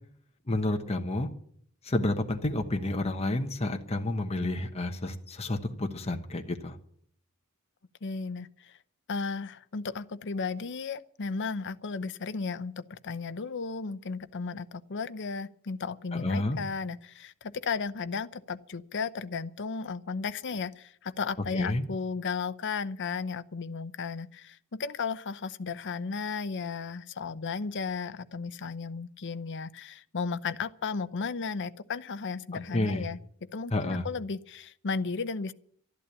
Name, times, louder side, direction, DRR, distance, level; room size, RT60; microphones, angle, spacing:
voice 1, 0.5-1.3 1.8-6.8 16.1-16.6 21.5-21.8 32.7-33.1 33.7-34.1, left 2 dB, 30° left, 5 dB, 1.1 m, -30 dB
voice 2, 8.0-8.8 9.1-33.2 33.5-35.5, left 5 dB, 55° left, 13 dB, 0.7 m, -34 dB
12.5 x 11.5 x 8.3 m, 0.62 s
head